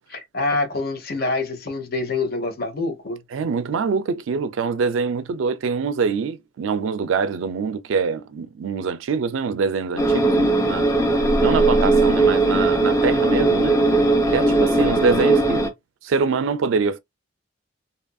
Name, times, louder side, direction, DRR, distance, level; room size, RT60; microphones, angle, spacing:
voice 1, 0.1-3.2, left 3 dB, 50° left, 0.8 m, -26 dB
voice 2, 3.3-10.9 11.4-13.8 14.3-15.7 16.0-17.0, right 5 dB, 75° right, 0.4 m, -24 dB
sound 1, 10.0-15.7, right 2 dB, 15° left, 0.5 m, -18 dB
2.8 x 2.5 x 2.3 m
head